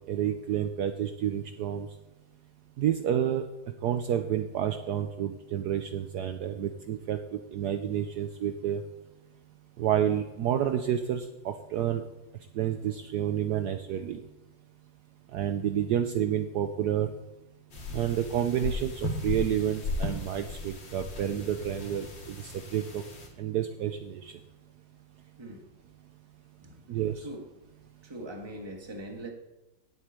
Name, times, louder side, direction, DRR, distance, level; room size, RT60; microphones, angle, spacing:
voice 1, 0.1-1.9 2.8-3.4 3.8-8.8 9.8-12.0 12.5-14.2 15.3-17.1 17.9-23.0 23.4-24.3 26.9-27.3, right 10 dB, 70° right, 7 dB, 1.1 m, -29 dB
sound 1, 17.7-23.3, left 2 dB, 90° left, 2.8 m, -36 dB
voice 2, 25.4-25.7 26.6-26.8 27.2-27.5 28.0-29.3, right 1 dB, 15° right, 2 dB, 1.4 m, -41 dB
8.0 x 7.9 x 8.9 m, 1.0 s
omnidirectional pair, 2.0 m